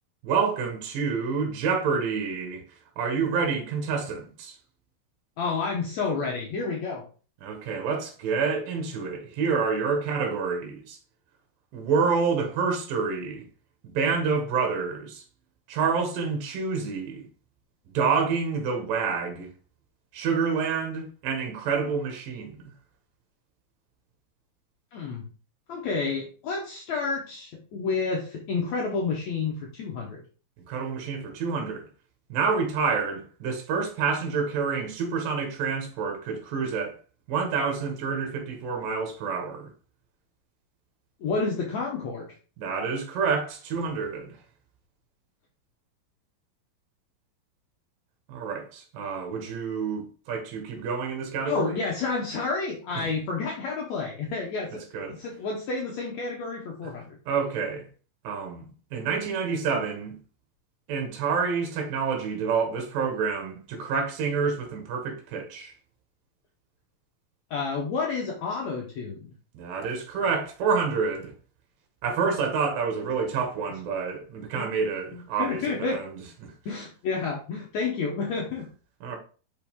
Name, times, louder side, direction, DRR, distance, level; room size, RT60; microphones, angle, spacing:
voice 1, 0.2-2.6 3.0-4.6 7.4-11.0 11.7-13.4 13.9-15.2 15.7-17.2 17.9-19.5 20.1-22.6 30.7-31.9 32.3-36.9 37.3-39.7 42.6-44.4 48.3-51.8 52.9-53.1 54.9-55.2 56.8-56.9 57.3-57.9 58.2-60.1 60.9-65.7 69.5-71.3 72.0-76.5 79.0-79.2, right 5 dB, 70° right, 3.0 m, -28 dB
voice 2, 5.4-7.0 24.9-25.3 25.7-30.2 41.2-42.3 51.4-54.8 55.1-57.1 67.5-69.3 74.6-74.7 75.1-76.0 76.7-78.7, left 4 dB, 70° left, 1.8 m, -30 dB
5.8 x 5.6 x 3.6 m
omnidirectional pair, 4.2 m